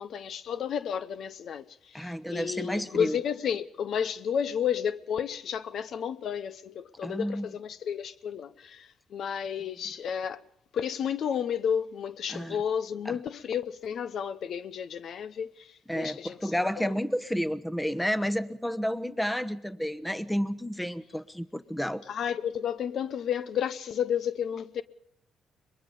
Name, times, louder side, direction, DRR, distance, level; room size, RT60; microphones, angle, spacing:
voice 1, 0.0-10.4 10.7-16.5 16.8-16.9 22.1-24.8, left 8 dB, 65° left, 0.7 m, -32 dB
voice 2, 1.9-3.2 7.0-7.5 12.3-12.6 13.0-13.2 15.9-22.0, equal, 5° left, 1.0 m, -31 dB
23.0 x 21.5 x 5.3 m
cardioid pair, 90°, 0 cm